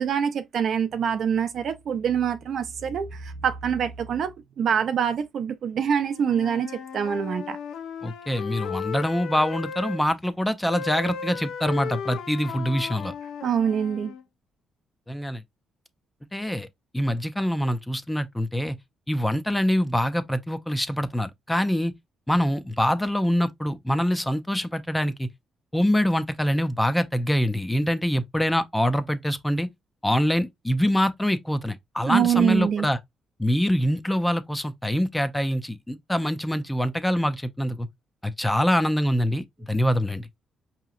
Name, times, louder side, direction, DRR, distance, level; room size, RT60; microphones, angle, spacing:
voice 1, 0.0-7.6 13.4-14.1 32.1-32.9, right 8 dB, 60° right, 0.5 m, -25 dB
Wind instrument woodwind instrument, 6.1-10.0 10.7-14.2, left 6 dB, 75° left, 0.5 m, -35 dB
voice 2, 8.0-13.1 15.1-15.4 16.3-16.7 16.9-18.8 19.1-21.9 22.3-25.3 25.7-29.7 30.0-33.0 33.4-37.9 38.2-40.3, equal, 10° left, 0.5 m, -24 dB
4.7 x 2.9 x 2.4 m
cardioid pair, 90°, 0 cm